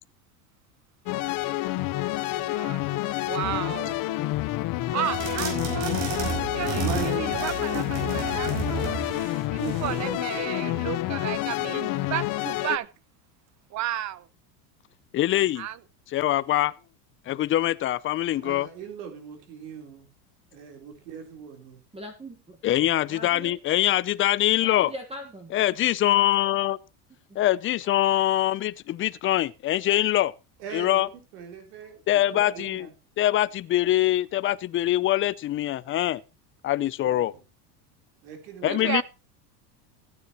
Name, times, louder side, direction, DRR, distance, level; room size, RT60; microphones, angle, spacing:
sound 1, 1.1-12.8, left 16 dB, 45° left, 0.9 m, -28 dB
voice 1, 2.5-2.8 3.3-4.2 4.9-5.9 6.4-9.2 9.5-12.9 13.7-14.3 15.6-15.8 38.7-39.0, right 13 dB, 35° right, 0.9 m, -33 dB
sound 2, 5.1-10.2, right 6 dB, 60° right, 5.4 m, -32 dB
voice 2, 6.8-7.3 7.7-8.0 9.6-10.9 18.4-20.1 20.5-21.8 30.6-31.1 31.3-32.9 37.0-37.3 38.2-38.9, right 6 dB, 80° right, 3.9 m, -39 dB
voice 3, 15.1-15.7 16.1-16.7 17.3-18.7 22.6-24.9 25.5-26.8 27.4-30.3 30.7-31.1 32.1-32.9 33.2-36.2 36.6-37.3 38.6-39.0, left 14 dB, 25° left, 0.5 m, -23 dB
voice 4, 21.9-22.6 23.1-23.6 24.6-25.5 27.3-27.4, equal, 10° right, 1.6 m, -40 dB
15.5 x 9.6 x 3.0 m
supercardioid pair, 125°, 47 cm